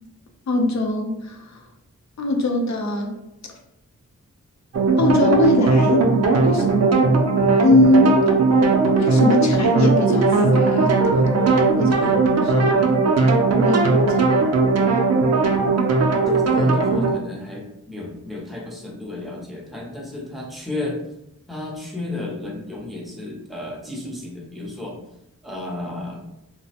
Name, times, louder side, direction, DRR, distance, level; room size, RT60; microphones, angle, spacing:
voice 1, 0.5-1.6 2.2-3.2 5.0-6.1 6.4-6.7 7.6-8.2 9.0-11.5 11.8-12.7 13.6-14.3, left 2 dB, 60° left, 2 dB, 0.6 m, -21 dB
sound 1, 4.7-17.1, right 3 dB, 55° right, 0.5 m, -18 dB
voice 2, 16.3-21.0 21.5-25.0 25.4-26.2, left 2 dB, ahead, -2 dB, 0.6 m, -32 dB
3.2 x 2.0 x 2.7 m, 0.84 s
wide cardioid pair, 110°, 32 cm